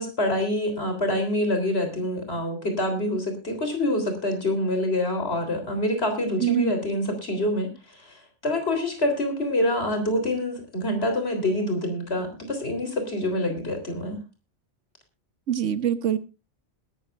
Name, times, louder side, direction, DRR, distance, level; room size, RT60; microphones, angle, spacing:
voice 1, 0.0-8.1 8.4-14.2, left 1 dB, 60° left, 6 dB, 3.9 m, -26 dB
voice 2, 6.4-6.7 15.5-16.2, right 10 dB, 85° right, 12 dB, 1.4 m, -24 dB
21.0 x 12.5 x 2.5 m, 0.28 s
omnidirectional pair, 1.2 m